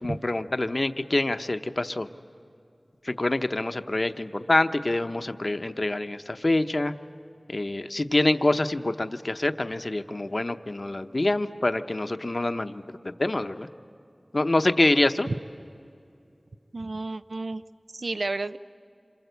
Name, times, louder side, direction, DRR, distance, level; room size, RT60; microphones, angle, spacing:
voice 1, 0.0-2.1 3.0-6.9 7.5-13.7 14.3-15.3, left 2 dB, 50° left, 9 dB, 0.8 m, -26 dB
voice 2, 16.7-17.6 17.9-18.6, right 2 dB, 85° right, 12 dB, 0.5 m, -31 dB
27.5 x 26.0 x 8.1 m, 2.6 s
wide cardioid pair, 55°, 0 cm